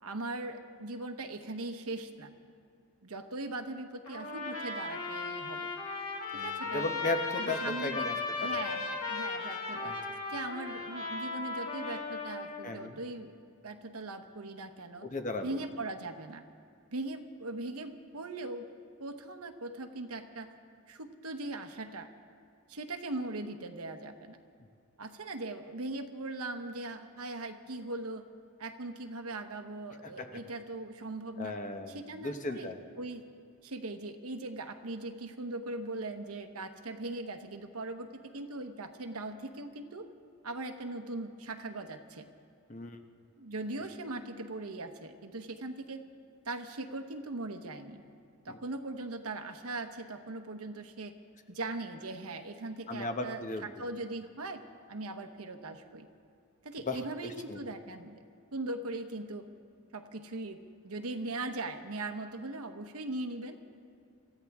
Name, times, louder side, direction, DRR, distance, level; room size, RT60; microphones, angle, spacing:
voice 1, 0.0-2.3 3.0-5.7 6.3-6.9 7.4-8.1 8.4-9.9 10.3-13.4 13.6-15.1 15.4-16.4 16.9-18.7 19.0-20.5 20.9-22.1 22.7-24.4 25.0-28.3 28.6-31.6 31.9-32.7 33.0-33.2 33.6-38.1 38.3-40.1 40.4-42.3 43.4-46.0 46.5-48.0 48.4-51.1 51.5-54.6 54.9-56.1 56.6-58.2 58.5-59.5 59.9-63.6, right 2 dB, 85° right, 6 dB, 1.0 m, -40 dB
Trumpet, 4.1-12.7, left 4 dB, 85° left, 2.3 m, -36 dB
voice 2, 6.3-8.6 9.7-10.0 12.6-13.0 15.0-15.6 30.0-30.4 31.4-32.8 42.7-43.0 48.5-48.6 52.9-53.8 56.9-57.6, left 2 dB, 35° left, 6 dB, 0.9 m, -36 dB
26.0 x 14.5 x 3.6 m, 2.3 s
head